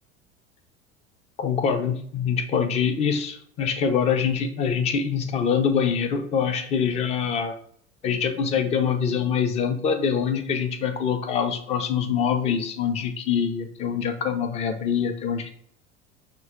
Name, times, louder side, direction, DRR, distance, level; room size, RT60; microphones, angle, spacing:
voice 1, 1.4-7.6 8.0-15.5, left 7 dB, 20° left, 8 dB, 0.4 m, -24 dB
5.9 x 2.2 x 3.6 m, 0.62 s
figure-of-eight pair, 70°, 38 cm